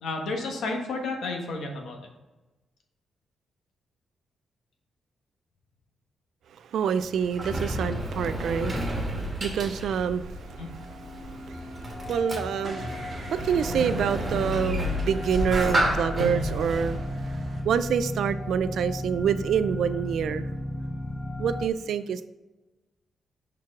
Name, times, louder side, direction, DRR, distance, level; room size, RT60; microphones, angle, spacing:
voice 1, 0.0-2.0 10.6-10.7, left 3 dB, 80° left, 2 dB, 1.2 m, -31 dB
voice 2, 6.6-17.3 17.6-20.5 21.4-22.3, right 7 dB, 75° right, 12 dB, 0.3 m, -27 dB
Sliding door, 7.0-18.3, equal, 25° right, 1.3 m, -31 dB
sound 1, 10.4-21.7, left 1 dB, 15° left, 0.4 m, -36 dB
sound 2, 11.4-17.6, right 1 dB, 45° right, 1.0 m, -43 dB
5.9 x 4.5 x 3.6 m, 1.1 s
cardioid pair, 135°, 0 cm